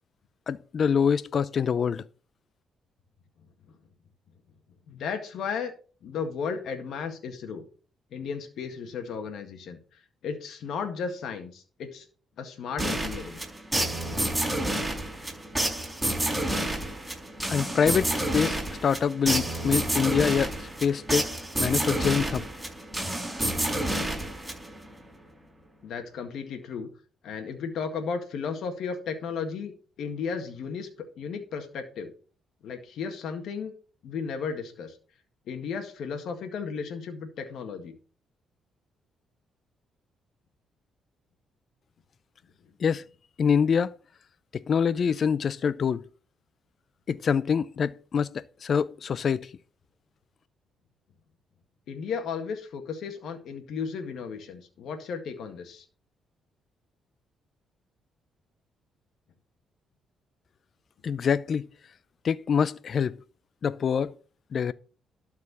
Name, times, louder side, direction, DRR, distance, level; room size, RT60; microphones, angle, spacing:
voice 1, 0.5-2.0 17.5-21.3 21.6-22.4 42.8-43.0 43.4-43.9 44.7-46.0 47.1-49.5 61.0-61.7 62.2-63.1 63.6-64.1 64.5-64.7, left 7 dB, 50° left, 0.4 m, -25 dB
voice 2, 4.9-5.7 6.0-7.6 8.1-12.1 12.4-13.4 25.8-26.9 27.2-29.7 30.0-32.1 32.6-33.7 34.0-35.0 35.5-37.9 51.9-55.9, left 6 dB, 75° left, 1.8 m, -34 dB
sound 1, 12.8-24.9, right 1 dB, 5° right, 5.6 m, -29 dB
12.5 x 4.8 x 6.0 m
cardioid pair, 90°, 0 cm